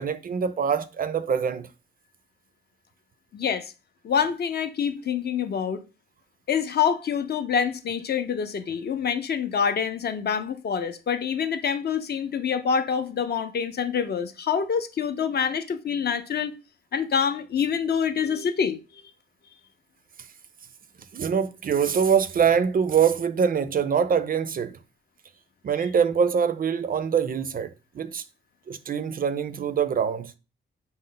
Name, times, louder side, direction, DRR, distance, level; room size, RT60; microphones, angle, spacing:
voice 1, 0.0-1.7 21.1-24.8 25.6-28.2 28.7-30.3, right 7 dB, 45° right, 0.4 m, -24 dB
voice 2, 3.3-3.7 4.0-5.8 6.5-16.5 16.9-19.0, left 7 dB, 50° left, 0.5 m, -26 dB
5.2 x 2.0 x 3.7 m
wide cardioid pair, 115°, 21 cm